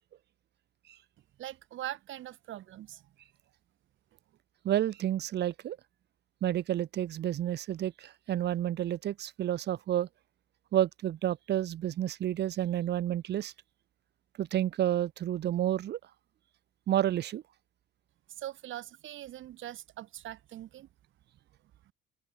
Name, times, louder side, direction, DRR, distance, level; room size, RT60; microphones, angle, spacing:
voice 1, 1.4-3.1 18.3-20.9 21.9-22.0, right 13 dB, 80° right, 1.8 m, -42 dB
voice 2, 4.6-5.8 6.4-10.1 10.7-13.5 14.4-16.0 16.9-17.4, right 11 dB, 60° right, 0.6 m, -30 dB
open air
cardioid pair, 90°, 20 cm